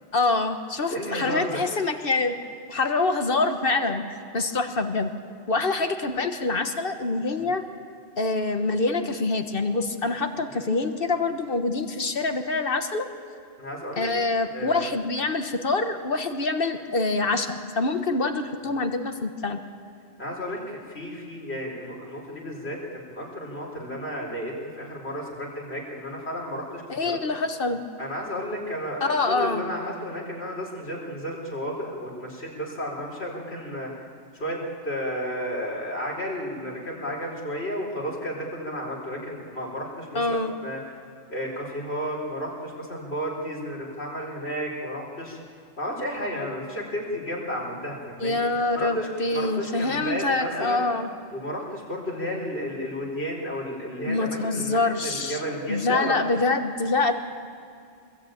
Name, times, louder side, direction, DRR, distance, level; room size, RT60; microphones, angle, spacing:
voice 1, 0.1-2.4 2.7-4.0 4.3-5.1 5.5-7.6 8.2-13.1 14.0-19.6 26.9-27.8 29.0-29.6 40.1-40.5 48.2-51.1 54.1-55.4 55.7-57.1, left 3 dB, 60° left, 7 dB, 1.5 m, -25 dB
voice 2, 0.9-1.6 13.6-14.1 14.5-14.9 18.6-18.7 20.2-22.8 23.1-27.2 28.0-33.9 34.3-40.8 41.3-45.4 45.8-48.4 48.7-50.9 51.3-56.2, equal, 75° left, -2 dB, 4.8 m, -32 dB
24.5 x 21.0 x 9.2 m, 2.4 s
omnidirectional pair, 1.1 m